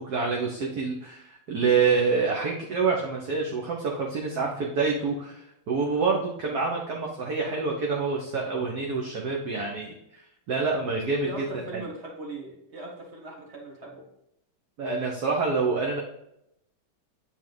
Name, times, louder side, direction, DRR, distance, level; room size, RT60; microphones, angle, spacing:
voice 1, 0.0-10.2 10.5-11.4 11.7-11.8 14.8-16.0, right 4 dB, 55° right, -1 dB, 1.4 m, -27 dB
voice 2, 11.2-14.0, right 2 dB, 35° right, -1 dB, 1.9 m, -39 dB
8.3 x 4.4 x 3.9 m, 0.79 s
omnidirectional pair, 2.2 m